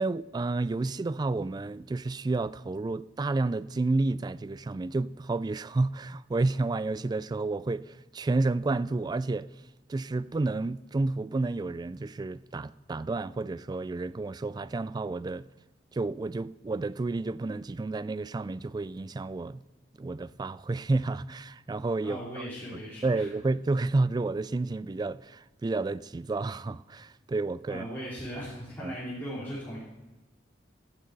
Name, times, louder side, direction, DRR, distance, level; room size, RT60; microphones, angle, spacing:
voice 1, 0.0-9.5 9.9-15.5 15.9-19.6 20.0-22.4 23.0-27.9 28.8-29.0, right 3 dB, 25° right, 0.3 m, -30 dB
voice 2, 22.0-23.3 27.7-29.8, equal, 15° left, 3.4 m, -38 dB
12.0 x 7.7 x 8.1 m
head